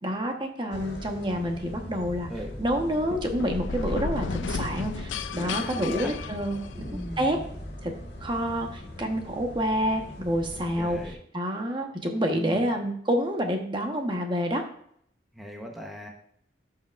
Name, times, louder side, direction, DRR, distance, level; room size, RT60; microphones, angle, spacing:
voice 1, 0.0-2.3 2.6-6.6 7.2-7.4 7.8-7.9 8.2-11.0 11.3-14.6, equal, 25° right, 3 dB, 1.0 m, -28 dB
sound 1, 0.7-11.2, left 1 dB, 65° left, 1.6 m, -40 dB
sound 2, 3.0-7.0, left 5 dB, 90° left, 0.5 m, -34 dB
voice 2, 5.4-6.1 6.8-7.4 10.8-11.2 12.3-12.7 15.3-16.1, equal, ahead, -1 dB, 0.8 m, -38 dB
12.0 x 5.8 x 2.4 m, 0.66 s
head